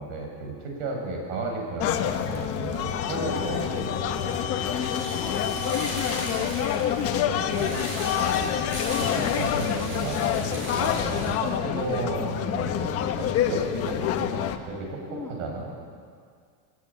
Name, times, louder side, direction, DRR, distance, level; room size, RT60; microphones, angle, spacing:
voice 1, 0.0-4.3 7.3-7.9 8.2-8.5 9.0-15.7, right 3 dB, 65° right, 1 dB, 7.5 m, -34 dB
sound 1, 1.8-14.6, left 9 dB, 30° left, 1.2 m, -27 dB
sound 2, 3.1-9.1, right 7 dB, 50° right, 2.1 m, -42 dB
voice 2, 4.7-5.8 15.1-15.3, left 3 dB, 5° left, -3 dB, 2.2 m, -42 dB
sound 3, 4.8-11.5 11.7-11.8, equal, 25° right, 7.4 m, -38 dB
22.0 x 18.5 x 8.9 m, 2.1 s
supercardioid pair, 170°, 47 cm